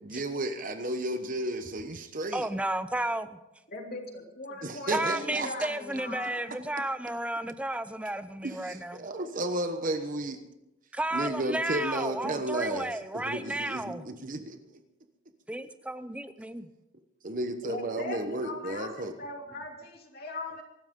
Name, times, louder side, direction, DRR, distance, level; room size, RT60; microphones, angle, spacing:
voice 1, 0.0-2.5 4.6-5.7 8.4-10.4 11.1-14.6 17.2-19.1, right 1 dB, 40° right, 7 dB, 1.1 m, -33 dB
voice 2, 2.3-3.4 4.9-9.0 10.9-14.1 15.5-16.7, right 1 dB, 5° right, 12 dB, 0.6 m, -33 dB
voice 3, 3.7-6.4 17.6-20.6, left 2 dB, 50° left, 2 dB, 2.9 m, -40 dB
24.0 x 12.5 x 3.8 m, 0.92 s
head